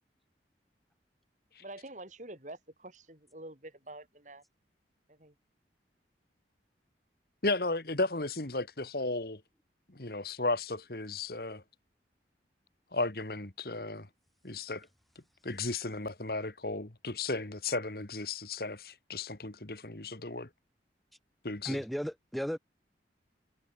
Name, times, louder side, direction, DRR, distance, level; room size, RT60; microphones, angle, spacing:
voice 1, 1.6-4.4 5.1-5.3, right 1 dB, 45° right, 4.1 m, -47 dB
voice 2, 7.4-9.4 9.9-11.6 12.9-14.1 14.4-14.9 15.4-20.5 21.4-21.8, left 3 dB, 55° left, 2.0 m, -34 dB
voice 3, 21.7-22.6, equal, ahead, 5.1 m, -34 dB
head